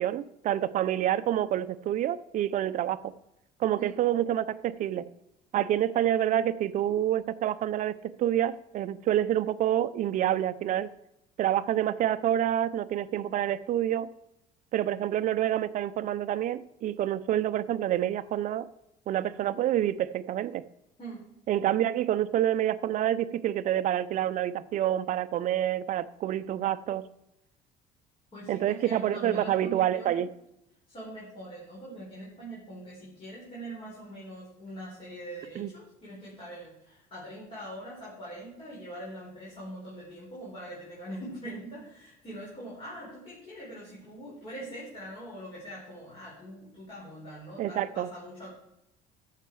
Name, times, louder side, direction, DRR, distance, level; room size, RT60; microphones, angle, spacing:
voice 1, 0.0-3.1 3.6-5.0 5.5-10.9 11.4-14.1 14.7-18.7 19.1-20.6 21.5-27.0 28.5-30.3 35.6-35.7 47.6-48.1, right 11 dB, 50° right, 15 dB, 0.6 m, -27 dB
voice 2, 28.3-30.2 30.9-48.5, right 1 dB, 35° left, -6 dB, 4.4 m, -43 dB
14.0 x 6.7 x 4.7 m, 0.85 s
cardioid pair, 125°, 16 cm